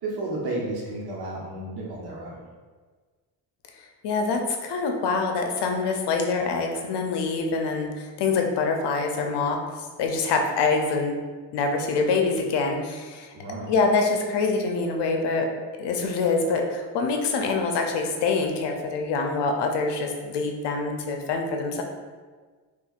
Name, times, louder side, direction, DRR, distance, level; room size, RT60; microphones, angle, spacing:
voice 1, 0.0-2.4 13.3-13.7, right 2 dB, 60° right, -4 dB, 1.1 m, -32 dB
voice 2, 4.0-11.1 11.5-13.3 13.7-15.5 15.8-21.8, left 4 dB, 70° left, 3 dB, 0.6 m, -25 dB
4.3 x 2.4 x 2.4 m, 1.4 s
cardioid pair, 95°, 43 cm